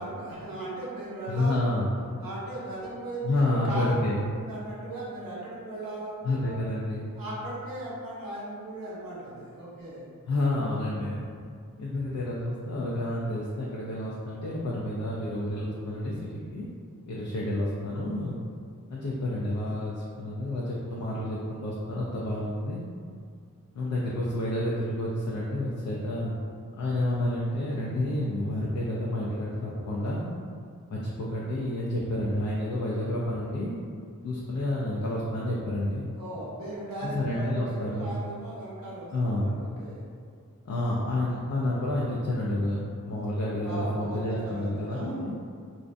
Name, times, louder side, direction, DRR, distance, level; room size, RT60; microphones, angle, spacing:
voice 1, 0.0-1.8 2.2-3.9 4.3-6.5 7.2-10.0 36.2-40.0 43.6-45.3, right 1 dB, 90° right, -6 dB, 0.7 m, -37 dB
voice 2, 1.3-1.9 3.2-4.3 6.2-7.1 10.3-11.3 11.8-16.6 17.1-18.4 18.9-22.8 23.7-26.4 26.8-30.3 30.9-33.7 34.2-36.1 37.0-38.1 39.1-39.6 40.6-42.8 43.1-45.3, left 1 dB, 60° left, -6 dB, 0.5 m, -29 dB
2.5 x 2.1 x 2.5 m, 2.2 s
cardioid pair, 45°, 33 cm